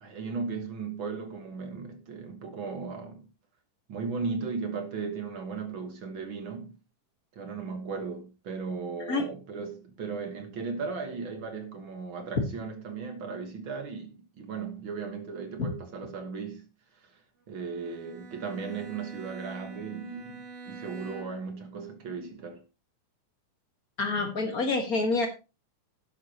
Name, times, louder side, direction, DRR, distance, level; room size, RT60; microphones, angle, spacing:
voice 1, 0.0-3.3 3.9-6.8 7.3-16.6 17.0-17.1 17.5-22.6, right 5 dB, 50° right, 1.6 m, -36 dB
Bowed string instrument, 17.5-21.6, right 4 dB, 80° right, 4.6 m, -45 dB
voice 2, 24.0-25.3, left 3 dB, 45° left, 1.1 m, -27 dB
11.5 x 11.5 x 2.9 m
omnidirectional pair, 4.1 m